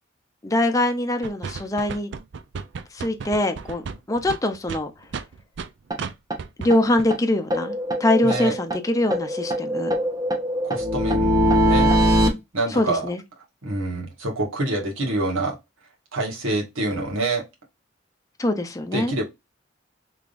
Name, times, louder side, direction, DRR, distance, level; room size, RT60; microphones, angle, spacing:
voice 1, 0.4-2.1 2.9-3.8 4.1-4.9 6.6-9.9 12.7-13.2 18.4-19.1, left 1 dB, 15° left, 0.5 m, -23 dB
sound 1, 1.2-5.7 6.0-6.1 6.4-6.7 7.0-7.1, right 5 dB, 60° right, 0.4 m, -33 dB
sound 2, 5.9-6.0 6.3-6.4 6.7-6.8 7.1-7.2 7.5-8.8 9.1-12.3, equal, 20° right, 0.8 m, -21 dB
voice 2, 8.2-8.5 10.6-11.9 12.5-13.1 13.6-15.6 16.1-17.4 18.9-19.2, right 2 dB, 85° right, 1.6 m, -26 dB
3.6 x 3.4 x 2.5 m
head